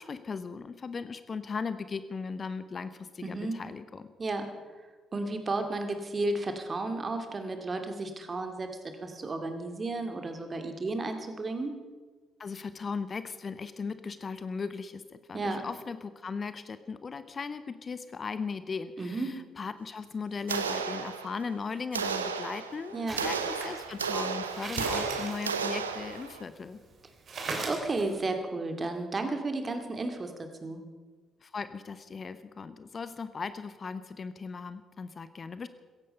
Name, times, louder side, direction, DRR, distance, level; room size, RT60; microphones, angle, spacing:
voice 1, 0.0-4.1 12.4-26.8 31.4-35.7, left 5 dB, 40° left, 13 dB, 0.9 m, -38 dB
voice 2, 3.2-3.6 4.2-4.4 5.1-8.7 9.0-11.7 15.3-15.6 19.0-19.3 22.9-23.2 27.7-30.3 30.6-30.8, right 2 dB, 35° right, 6 dB, 2.4 m, -33 dB
sound 1, 20.5-21.5 21.9-26.4, right 6 dB, 85° right, 0.7 m, -33 dB
sound 2, 23.1-26.6 26.9-27.0 27.3-28.2, right 3 dB, 50° right, 3.4 m, -39 dB
16.5 x 15.5 x 5.4 m, 1.4 s
figure-of-eight pair, 40°, 0 cm